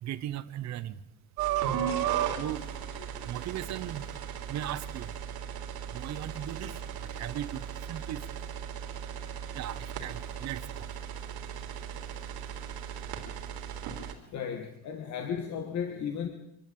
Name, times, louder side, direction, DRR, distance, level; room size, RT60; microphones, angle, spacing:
voice 1, 0.0-1.0 2.4-2.6 3.2-4.0 4.5-5.1 5.9-6.7 7.0-8.4 9.5-10.8, right 12 dB, 45° right, 12 dB, 1.1 m, -37 dB
sound 1, 1.4-14.1, right 9 dB, 80° right, 3.6 m, -36 dB
voice 2, 1.9-3.3 9.5-9.6 14.3-16.3, left 7 dB, 50° left, 6 dB, 2.0 m, -37 dB
25.5 x 12.0 x 8.8 m, 0.83 s
cardioid pair, 180°, 37 cm